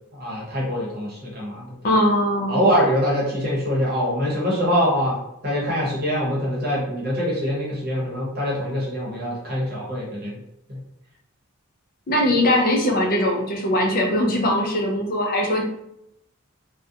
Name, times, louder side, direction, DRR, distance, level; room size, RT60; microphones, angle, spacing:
voice 1, 0.1-1.7 2.5-5.2 5.4-10.4 10.7-10.8, equal, 45° right, -5 dB, 0.9 m, -24 dB
voice 2, 1.8-2.6 12.1-15.6, left 1 dB, 45° left, 0 dB, 0.5 m, -21 dB
2.4 x 2.1 x 2.7 m, 0.81 s
head